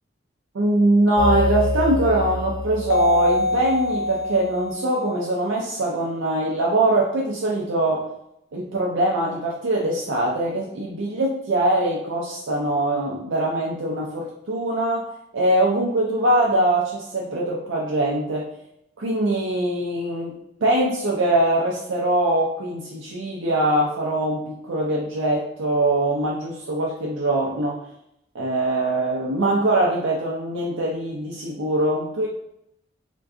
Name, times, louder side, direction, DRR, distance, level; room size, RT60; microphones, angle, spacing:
voice 1, 0.5-8.0 8.5-15.1 15.3-18.5 19.0-20.3 20.6-27.8 28.3-32.3, right 1 dB, 75° right, -3 dB, 0.5 m, -22 dB
sound 1, 1.2-5.8, left 2 dB, 45° left, 0.4 m, -25 dB
2.4 x 2.2 x 3.6 m, 0.78 s
head